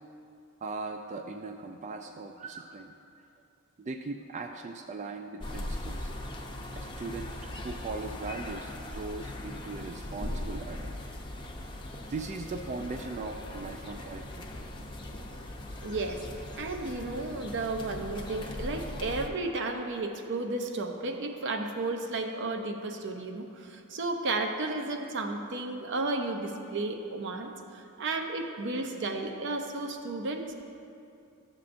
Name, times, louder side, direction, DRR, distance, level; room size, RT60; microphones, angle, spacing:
voice 1, 0.6-2.9 3.8-6.1 6.7-10.9 12.1-14.4, right 3 dB, 35° right, 5 dB, 0.3 m, -39 dB
sound 1, 5.4-19.3, left 1 dB, 20° left, 0.6 m, -39 dB
voice 2, 15.8-16.3 16.5-30.5, right 2 dB, 55° right, 4 dB, 0.7 m, -33 dB
13.5 x 7.3 x 2.5 m, 2.6 s
head